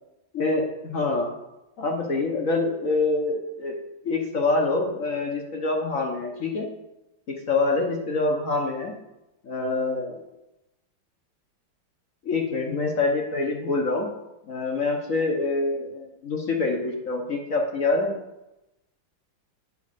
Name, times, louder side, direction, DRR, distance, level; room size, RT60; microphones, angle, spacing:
voice 1, 0.3-1.3 1.8-3.8 4.0-6.7 7.3-9.0 9.4-10.2 12.2-14.1 14.4-18.1, left 3 dB, 50° left, 1 dB, 1.1 m, -25 dB
8.5 x 4.6 x 6.7 m, 0.95 s
omnidirectional pair, 2.1 m